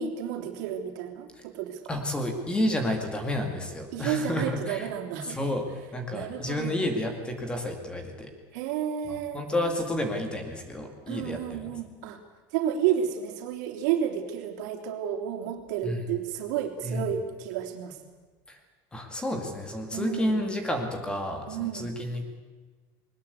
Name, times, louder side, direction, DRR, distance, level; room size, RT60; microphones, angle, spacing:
voice 1, 0.0-1.8 3.9-5.4 6.1-6.8 8.5-9.4 11.1-12.2 12.5-18.0 19.9-20.4 21.5-21.9, right 9 dB, 75° right, 3 dB, 3.3 m, -31 dB
voice 2, 1.9-4.9 5.3-5.7 5.9-8.3 9.3-11.7 15.8-16.0 16.8-17.1 18.5-18.6 18.9-22.2, left 1 dB, 10° left, 5 dB, 2.3 m, -30 dB
21.0 x 20.0 x 8.3 m, 1.3 s
cardioid pair, 175°, 10 cm